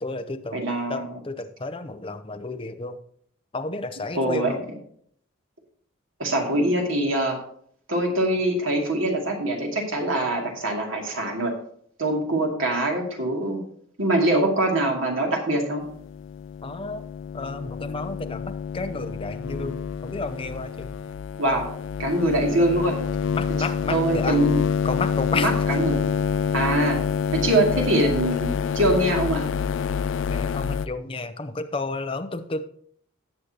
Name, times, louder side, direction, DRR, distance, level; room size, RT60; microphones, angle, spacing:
voice 1, 0.0-0.6 0.9-3.0 3.5-4.6 16.6-17.0 17.3-21.0 23.3-24.4 24.8-25.5 30.3-32.6, left 3 dB, 25° left, 8 dB, 0.7 m, -31 dB
voice 2, 0.5-1.1 4.1-4.5 6.2-7.4 7.9-11.5 12.0-13.6 14.0-15.8 21.4-21.6 22.0-23.0 23.9-24.6 25.3-26.1 26.5-27.0 27.3-29.4, right 1 dB, 75° right, 0 dB, 2.6 m, -23 dB
sound 1, 15.8-30.9, left 6 dB, 65° left, 0.4 m, -27 dB
18.0 x 6.7 x 3.0 m, 0.63 s
head